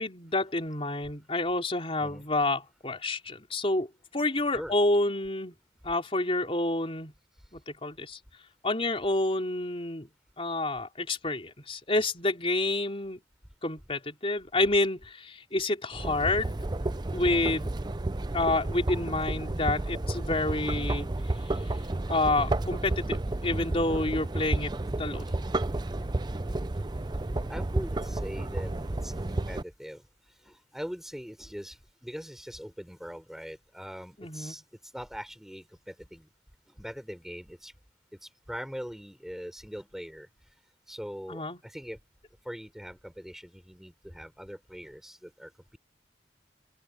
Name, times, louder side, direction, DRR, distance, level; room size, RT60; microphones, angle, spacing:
voice 1, 0.0-3.9 4.1-5.5 5.8-7.1 7.5-8.2 8.6-10.1 10.4-13.2 13.6-16.7 17.1-17.7 18.3-21.1 22.1-25.4 34.2-34.5 41.3-41.6, left 2 dB, 35° left, 4.3 m, -29 dB
sound 1, 15.9-29.6, right 2 dB, 25° right, 0.6 m, -31 dB
voice 2, 27.5-28.7 29.0-30.0 30.4-34.6 34.9-36.3 36.7-37.7 38.1-40.3 40.9-42.0 42.4-45.8, equal, ahead, 5.4 m, -42 dB
open air
head